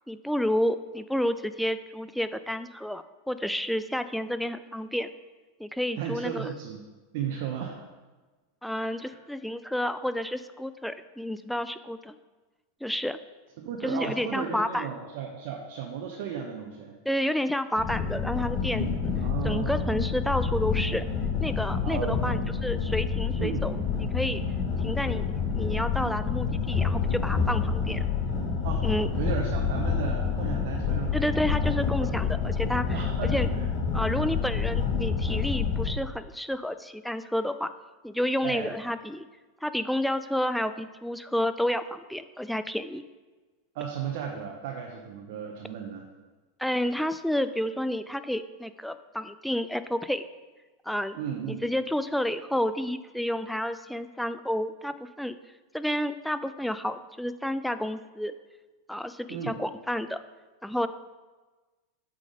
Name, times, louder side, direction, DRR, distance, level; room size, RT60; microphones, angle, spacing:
voice 1, 0.1-5.1 5.6-6.5 8.6-12.2 12.8-13.2 13.8-14.9 17.1-18.9 19.4-21.1 21.4-23.8 24.1-24.4 24.8-25.3 25.5-28.0 28.8-29.1 31.1-33.5 33.9-37.7 38.0-39.2 39.6-43.0 46.6-50.2 50.9-51.2 51.6-55.4 55.7-58.3 58.9-60.2 60.6-60.9, left 1 dB, ahead, 11 dB, 0.4 m, -30 dB
voice 2, 6.0-6.8 7.1-7.8 8.9-9.2 13.6-17.0 19.2-19.9 21.8-22.4 23.4-23.7 28.6-31.7 32.0-32.1 32.9-33.6 34.2-34.4 38.4-38.7 43.7-46.1 51.2-51.7 59.3-59.5, right 7 dB, 55° right, 0 dB, 0.8 m, -35 dB
sound 1, 17.8-35.9, left 5 dB, 40° left, 1.2 m, -28 dB
8.1 x 3.9 x 5.0 m, 1.3 s
figure-of-eight pair, 90°, 0 cm